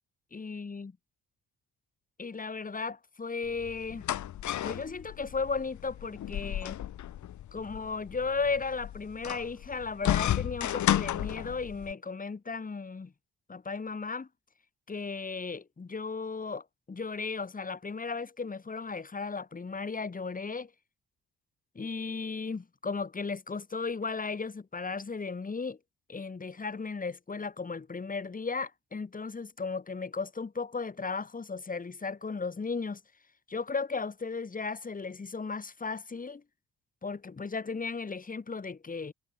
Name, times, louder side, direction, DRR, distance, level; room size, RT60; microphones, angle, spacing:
voice 1, 0.3-0.9 2.2-4.1 4.6-6.8 7.5-13.1 13.5-14.3 14.9-20.7 21.7-25.8 26.1-33.0 33.5-36.4 37.0-39.1, left 4 dB, 25° left, 3.0 m, -35 dB
sound 1, 3.5-11.9, left 12 dB, 70° left, 3.1 m, -33 dB
cardioid pair, 90°, 30 cm